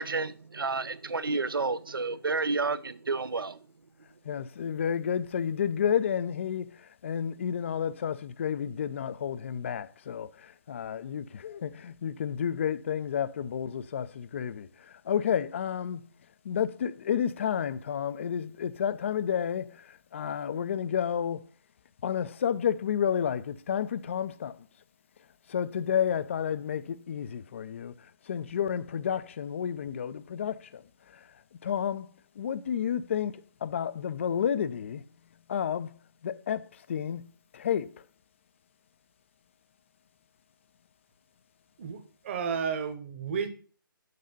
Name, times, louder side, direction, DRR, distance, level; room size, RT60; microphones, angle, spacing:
voice 1, 0.0-3.6, right 3 dB, 80° right, 0.6 m, -30 dB
voice 2, 4.3-6.7 7.0-14.7 15.1-16.1 16.4-21.4 22.0-24.6 25.5-27.9 28.3-30.8 31.6-32.1 32.4-35.0 35.5-35.9 36.2-37.3 37.5-38.0, left 8 dB, 35° left, 0.4 m, -31 dB
voice 3, 41.8-43.5, right 6 dB, 35° right, 1.1 m, -32 dB
6.7 x 5.5 x 5.2 m
figure-of-eight pair, 145°, 12 cm